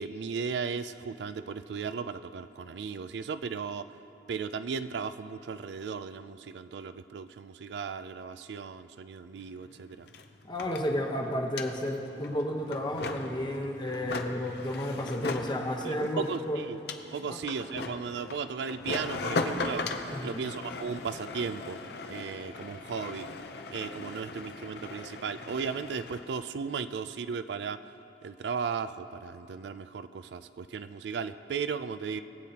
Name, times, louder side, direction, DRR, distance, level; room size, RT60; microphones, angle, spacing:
voice 1, 0.0-3.9 4.3-10.1 15.8-16.8 17.1-19.9 20.2-21.8 22.1-23.3 23.7-27.8 28.2-32.2, right 6 dB, 70° right, 11 dB, 0.4 m, -36 dB
sound 1, 9.4-9.5 9.7-26.3, left 3 dB, 65° left, 0.6 m, -39 dB
voice 2, 10.5-16.6 17.2-17.4 20.1-20.4, equal, 25° left, 1 dB, 1.0 m, -32 dB
21.5 x 8.3 x 2.9 m, 2.8 s
head